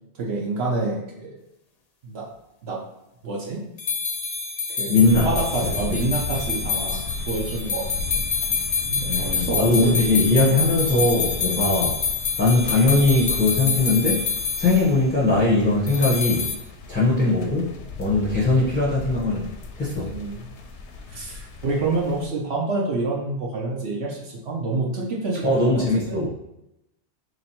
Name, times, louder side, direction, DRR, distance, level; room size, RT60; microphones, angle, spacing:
voice 1, 0.2-1.3 2.0-2.3 2.6-2.8 3.2-3.6 4.8-8.2 8.9-10.0 10.3-10.5 20.1-20.5 21.1-26.2, right 3 dB, 70° right, -2 dB, 1.0 m, -28 dB
sound 1, 3.8-14.9 15.9-16.6, left 6 dB, 45° left, 0.6 m, -27 dB
voice 2, 4.9-5.3 5.6-6.0 6.9-7.0 9.1-12.0 12.4-14.2 14.6-16.5 16.9-19.5 19.8-20.1 25.4-26.3, left 2 dB, 10° left, -8 dB, 0.8 m, -20 dB
sound 2, 5.0-22.3, left 3 dB, 90° left, 0.9 m, -36 dB
3.2 x 3.0 x 4.2 m, 0.86 s
omnidirectional pair, 1.2 m